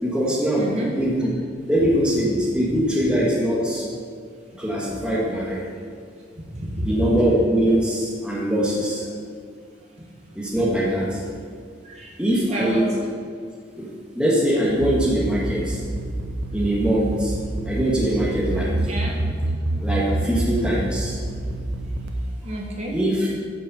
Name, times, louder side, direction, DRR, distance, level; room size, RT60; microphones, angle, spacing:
voice 1, 0.0-0.7 1.0-1.3 1.7-3.8 4.6-5.6 6.8-9.1 10.3-11.2 12.2-12.9 13.7-13.9 14.1-15.8 16.5-17.3 17.6-18.7 19.8-21.2 22.9-23.3, right 1 dB, 5° right, -5 dB, 1.4 m, -22 dB
voice 2, 0.6-1.0 2.4-2.6 4.5-4.9 6.5-6.9 10.0-10.1 11.8-12.2 12.5-12.8 18.9-19.2 22.4-23.0, right 1 dB, 40° right, -2 dB, 1.4 m, -30 dB
sound 1, 14.8-22.1, right 1 dB, 80° right, 0.9 m, -27 dB
8.8 x 5.4 x 6.9 m, 2.1 s
head